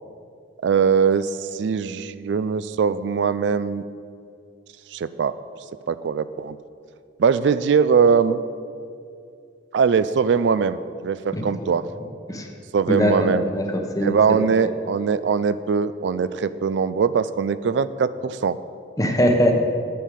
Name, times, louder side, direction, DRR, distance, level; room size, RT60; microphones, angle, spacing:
voice 1, 0.6-3.8 4.9-5.3 5.9-6.6 7.2-8.4 9.7-11.8 12.7-13.5 14.0-18.6, right 6 dB, 75° right, 15 dB, 0.4 m, -21 dB
voice 2, 11.3-11.7 12.3-12.5 12.9-14.2 19.0-19.5, equal, 20° left, 3 dB, 1.0 m, -21 dB
9.3 x 6.4 x 8.3 m, 2.4 s
head